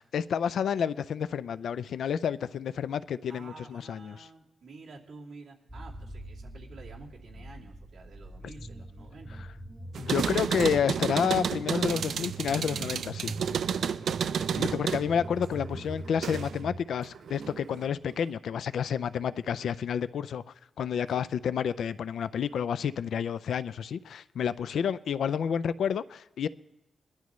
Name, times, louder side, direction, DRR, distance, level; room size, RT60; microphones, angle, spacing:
voice 1, 0.0-4.3 10.0-13.4 14.6-20.4 20.8-26.5, left 8 dB, 80° left, 0.4 m, -30 dB
voice 2, 3.3-9.4 13.8-14.2 14.6-15.0 21.1-21.2 24.7-24.9, right 3 dB, 60° right, 2.6 m, -50 dB
sound 1, 5.7-16.8, right 1 dB, 5° right, 0.6 m, -44 dB
sound 2, 9.9-16.7 17.0-17.9, right 7 dB, 75° right, 0.4 m, -31 dB
22.0 x 11.5 x 3.1 m
wide cardioid pair, 160°, 0 cm